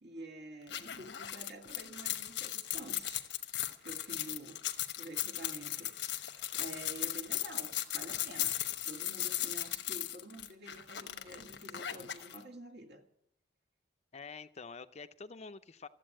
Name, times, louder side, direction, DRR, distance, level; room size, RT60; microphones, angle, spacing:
voice 1, 0.0-3.3 3.8-4.6 5.0-13.0, right 1 dB, 70° right, 2.4 m, -49 dB
sound 1, 0.7-12.4, left 12 dB, 85° left, 1.1 m, -37 dB
voice 2, 14.1-15.9, left 4 dB, 40° left, 0.6 m, -47 dB
14.0 x 8.2 x 10.0 m
head